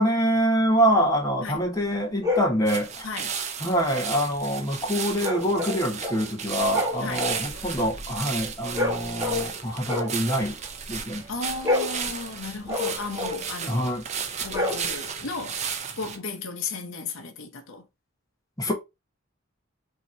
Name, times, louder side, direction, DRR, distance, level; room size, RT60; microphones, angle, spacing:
voice 1, 0.0-3.1 3.6-10.6 10.9-11.2 13.7-14.0 18.6-18.7, equal, 15° left, 1.0 m, -25 dB
sound 1, 2.2-2.6 5.2-6.3 6.6-9.6 9.8-11.1 11.4-13.5 14.4-15.2, left 2 dB, 15° right, 1.4 m, -29 dB
sound 2, 2.7-16.2, right 6 dB, 30° right, 0.6 m, -34 dB
voice 2, 7.0-7.3 11.3-13.9 14.4-15.6 16.0-17.8, left 3 dB, 65° left, 0.8 m, -35 dB
5.5 x 2.9 x 3.2 m
head